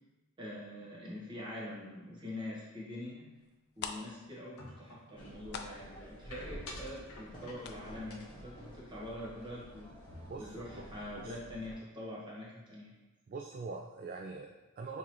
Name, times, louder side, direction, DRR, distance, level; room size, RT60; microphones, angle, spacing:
voice 1, 0.4-3.2 3.8-9.9 10.4-13.0, left 1 dB, 20° right, -6 dB, 1.2 m, -44 dB
sound 1, 3.5-3.6 3.7-9.3 9.6-9.7 10.1-10.3 10.7-10.8, left 6 dB, 50° left, 0.3 m, -46 dB
sound 2, 4.6-5.2 6.3-7.8 8.1-9.8 10.1-10.3 10.6-11.1, left 2 dB, 75° left, 0.7 m, -52 dB
sound 3, 5.1-11.7, equal, 20° left, 1.4 m, -50 dB
voice 2, 10.3-10.9 11.2-11.3 13.3-15.0, right 4 dB, 40° right, 1 dB, 0.3 m, -43 dB
6.0 x 2.8 x 3.0 m, 1.1 s
head